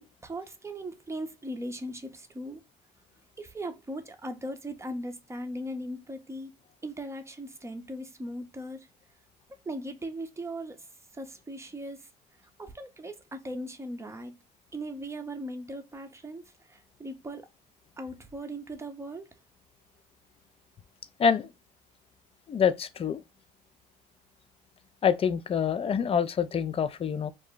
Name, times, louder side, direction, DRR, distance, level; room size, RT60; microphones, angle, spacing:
voice 1, 0.2-2.6 3.4-6.5 6.8-8.9 9.7-10.8 11.1-12.0 12.6-14.3 14.7-17.5 18.0-19.3, right 1 dB, 15° right, 0.6 m, -38 dB
voice 2, 22.5-23.2 25.0-27.3, left 7 dB, 30° left, 0.4 m, -26 dB
2.5 x 2.1 x 3.5 m
supercardioid pair, 70°, 20 cm